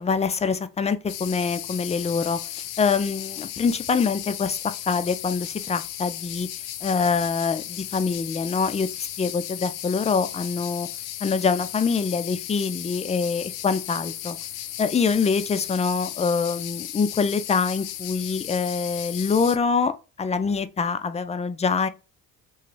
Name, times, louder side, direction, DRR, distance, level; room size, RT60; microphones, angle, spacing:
voice 1, 0.0-6.5 6.8-10.9 11.2-14.4 14.8-19.9 20.2-21.9, left 5 dB, 20° left, 0.4 m, -25 dB
sound 1, 1.1-19.6, left 12 dB, 75° left, 0.5 m, -35 dB
3.1 x 2.3 x 3.1 m
hypercardioid pair, 55°, 38 cm